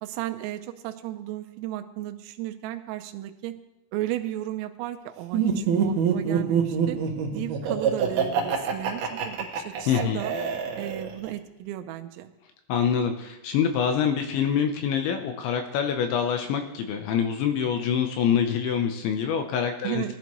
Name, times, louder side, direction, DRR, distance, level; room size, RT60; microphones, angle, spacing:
voice 1, 0.0-3.6 3.9-7.0 7.3-10.3 10.8-12.3 19.8-20.1, right 14 dB, 85° right, 7 dB, 3.3 m, -34 dB
Laughter, 5.3-11.3, right 7 dB, 65° right, 2.7 m, -25 dB
voice 2, 9.9-10.2 12.7-20.1, left 7 dB, 80° left, 6 dB, 2.9 m, -25 dB
18.0 x 11.5 x 3.1 m, 0.94 s
omnidirectional pair, 5.8 m